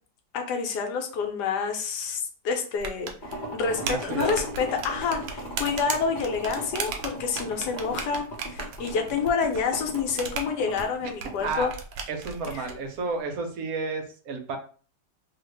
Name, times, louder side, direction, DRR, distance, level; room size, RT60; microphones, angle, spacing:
voice 1, 0.3-11.7 12.5-12.7, left 5 dB, 75° left, 4 dB, 1.2 m, -28 dB
sound 1, 2.8-12.7, right 5 dB, 90° right, 1.3 m, -36 dB
sound 2, 3.2-11.7, equal, 35° left, 0.8 m, -38 dB
voice 2, 3.8-4.4 11.4-11.7 12.1-14.6, right 4 dB, 65° right, 4 dB, 1.0 m, -31 dB
2.8 x 2.4 x 3.1 m, 0.40 s
omnidirectional pair, 1.8 m